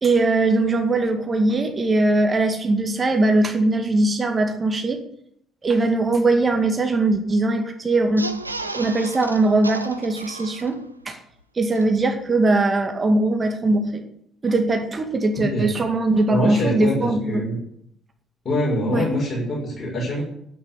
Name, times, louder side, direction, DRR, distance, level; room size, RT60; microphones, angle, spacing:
voice 1, 0.0-5.0 5.6-8.3 8.7-11.2 11.6-14.0 14.4-17.5 18.9-19.0, right 2 dB, 30° right, 5 dB, 2.2 m, -20 dB
sound 1, 8.0-11.0 11.4-11.5 11.7-11.8, right 2 dB, 85° right, 0.5 m, -34 dB
voice 2, 15.4-15.7 16.3-17.6 18.4-20.2, left 1 dB, 40° left, -4 dB, 6.2 m, -24 dB
10.5 x 9.7 x 8.2 m, 0.71 s
figure-of-eight pair, 45°, 0 cm